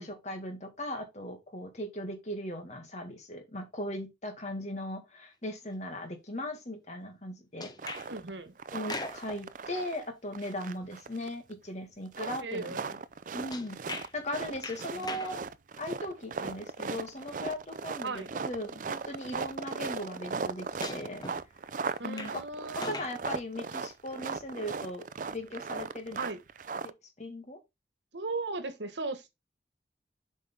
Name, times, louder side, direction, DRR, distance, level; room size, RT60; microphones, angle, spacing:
voice 1, 0.0-8.1 8.7-13.0 13.3-15.4 15.8-21.2 22.0-22.4 22.8-26.3 26.8-27.6, left 1 dB, 40° left, 2.1 m, -38 dB
sound 1, 7.6-8.1 8.7-9.4 13.5-14.1 14.6-15.4 17.2-17.3 18.5-18.6 20.8-21.4 21.9-22.4 22.7-23.2 23.8-23.9, left 3 dB, 25° left, 1.0 m, -40 dB
sound 2, 7.8-8.3 8.6-10.1 10.3-11.5 12.1-26.9, right 5 dB, 45° right, 0.4 m, -38 dB
voice 2, 8.1-8.5 12.4-12.8 14.9-15.2 18.0-18.3 22.0-23.0 26.2-26.4 28.1-29.3, right 3 dB, 90° right, 1.3 m, -37 dB
7.7 x 5.4 x 3.4 m
head